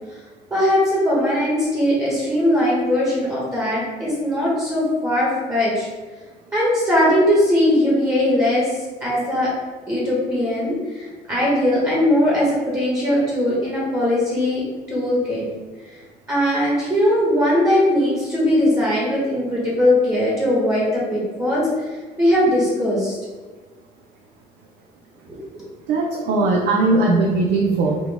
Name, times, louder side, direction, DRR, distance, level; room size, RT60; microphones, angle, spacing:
voice 1, 0.5-5.9 6.5-9.5 9.9-14.6 14.9-15.4 15.8-15.9 16.3-23.2 25.3-25.6, left 1 dB, 20° right, -6 dB, 1.2 m, -20 dB
voice 2, 25.9-28.0, right 3 dB, 75° right, -1 dB, 0.6 m, -19 dB
4.0 x 2.3 x 3.4 m, 1.3 s
cardioid pair, 110°, 17 cm